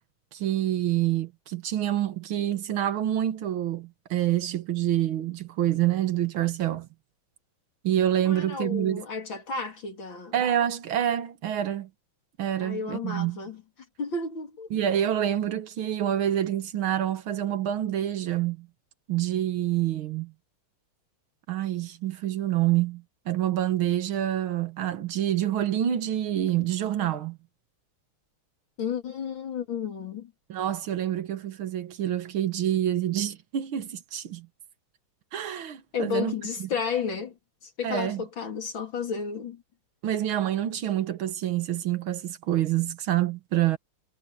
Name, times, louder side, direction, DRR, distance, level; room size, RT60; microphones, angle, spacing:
voice 1, 0.3-6.9 7.8-9.0 10.3-11.9 12.4-13.4 14.7-18.7 19.1-20.3 21.5-27.4 30.5-34.5 35.3-36.3 36.6-36.7 37.8-38.2 40.0-43.8, right 11 dB, 80° right, 2.0 m, -27 dB
voice 2, 8.3-10.3 12.6-13.6 14.0-14.7 28.8-30.3 35.9-37.3 37.6-39.6, left 5 dB, 65° left, 3.9 m, -32 dB
omnidirectional pair, 2.3 m